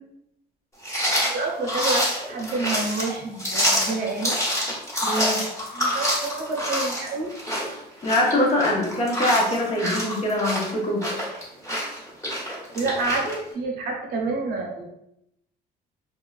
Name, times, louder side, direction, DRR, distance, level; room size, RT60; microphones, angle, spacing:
sound 1, 0.8-13.4, equal, 15° left, 1.1 m, -27 dB
voice 1, 1.1-4.3 5.7-7.3 12.7-14.8, right 3 dB, 60° right, 0 dB, 0.7 m, -28 dB
voice 2, 5.0-5.4 8.0-11.0, left 1 dB, 40° left, -2 dB, 0.9 m, -23 dB
3.0 x 2.3 x 2.3 m, 0.80 s
cardioid pair, 110°, 17 cm